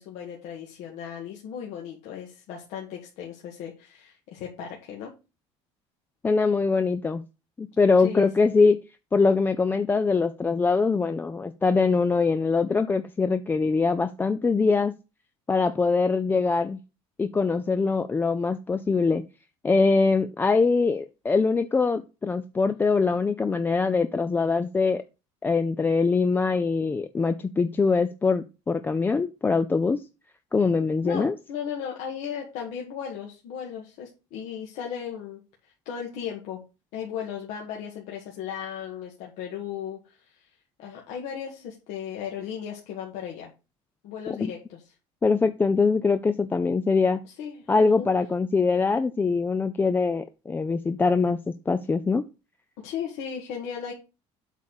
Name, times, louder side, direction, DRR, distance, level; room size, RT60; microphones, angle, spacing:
voice 1, 0.0-5.1 8.0-8.3 31.0-36.6 36.9-40.5 40.8-43.5 44.0-44.8 47.2-47.7 48.0-48.1 52.8-53.9, left 8 dB, 70° left, -1 dB, 2.0 m, -36 dB
voice 2, 6.2-7.2 7.6-8.8 9.1-14.9 15.5-16.8 17.2-19.2 19.6-25.0 25.4-30.0 30.5-31.3 44.4-44.5 45.2-47.2 47.7-51.4 51.7-52.2, left 4 dB, 15° left, 10 dB, 0.5 m, -23 dB
8.1 x 4.1 x 6.6 m, 0.30 s
cardioid pair, 130°, 12 cm